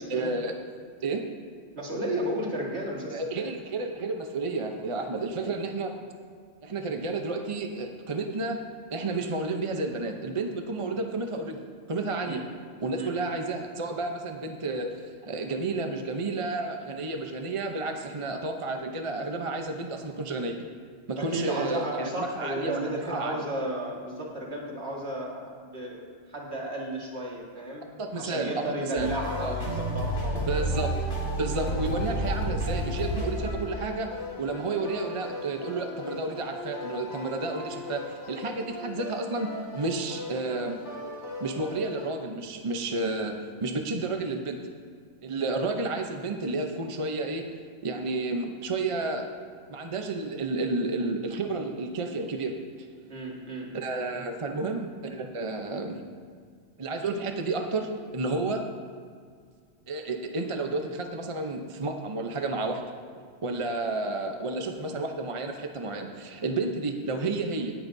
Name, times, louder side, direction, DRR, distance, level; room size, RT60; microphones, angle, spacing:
voice 1, 0.1-0.6 1.0-1.2 3.1-5.9 6.6-8.6 8.9-11.6 11.9-12.4 12.8-14.9 15.2-20.5 21.1-23.4 28.0-29.1 29.4-29.5 30.5-30.9 31.4-34.1 34.4-40.8 41.4-44.6 45.2-47.5 47.8-49.3 49.7-52.6 53.7-56.0 56.8-58.6 59.9-62.8 63.4-67.7, right 3 dB, 30° right, 4 dB, 0.7 m, -31 dB
voice 2, 1.8-3.5 12.2-12.4 12.9-13.1 21.2-27.8 28.1-30.8 53.1-53.7, right 1 dB, 60° right, -2 dB, 2.1 m, -33 dB
sound 1, 29.0-42.0, equal, 65° left, 2.3 m, -33 dB
17.5 x 10.5 x 2.7 m, 2.1 s
omnidirectional pair, 1.3 m